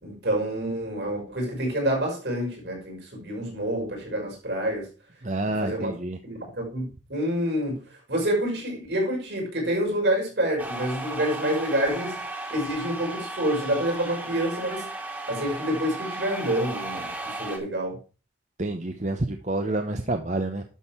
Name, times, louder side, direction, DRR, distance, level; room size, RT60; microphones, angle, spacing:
voice 1, 0.0-4.9 5.6-5.9 6.2-7.8 8.1-12.2 12.5-14.9 15.3-18.0, right 1 dB, 70° right, 5.5 m, -27 dB
voice 2, 5.2-6.2 18.6-20.6, right 2 dB, 40° right, 0.8 m, -28 dB
sound 1, 10.6-17.6, right 2 dB, 10° right, 1.8 m, -35 dB
11.5 x 6.5 x 4.4 m
head